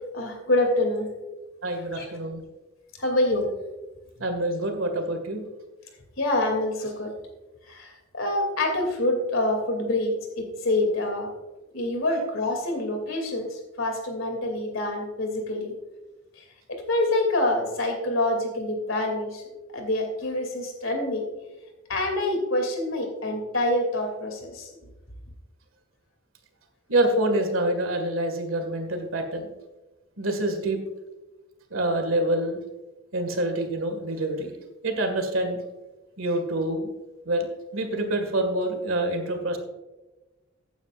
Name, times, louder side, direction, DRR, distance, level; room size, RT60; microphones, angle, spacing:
voice 1, 0.1-1.1 1.9-2.1 3.0-3.5 6.2-7.1 7.7-11.3 11.7-15.7 16.7-19.4 19.7-21.2 21.9-24.7, left 1 dB, 75° left, 3 dB, 2.7 m, -26 dB
voice 2, 1.6-2.4 4.2-5.4 26.9-29.5 30.2-30.8 31.7-32.6 33.1-34.5 34.8-35.6 36.2-36.9 37.3-37.5 37.7-39.6, right 1 dB, 80° right, 6 dB, 1.9 m, -26 dB
15.0 x 9.2 x 2.5 m, 1.1 s
head